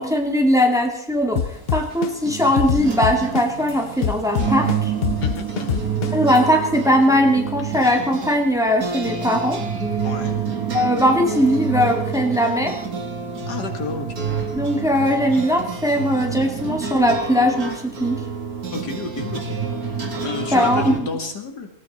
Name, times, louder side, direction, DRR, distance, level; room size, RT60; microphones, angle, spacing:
voice 1, 0.0-1.4 1.7-4.9 6.1-9.6 10.7-12.8 14.5-18.2 20.5-21.0, equal, ahead, 2 dB, 2.3 m, -19 dB
sound 1, 1.4-3.7 4.0-6.4, left 8 dB, 55° left, 0.7 m, -23 dB
sound 2, 1.5-21.0, right 6 dB, 65° right, 2.6 m, -28 dB
voice 2, 5.2-5.8 10.0-10.5 13.5-14.3 18.7-21.7, left 3 dB, 85° left, 4 dB, 2.8 m, -31 dB
19.0 x 17.5 x 4.3 m, 0.69 s
omnidirectional pair, 1.7 m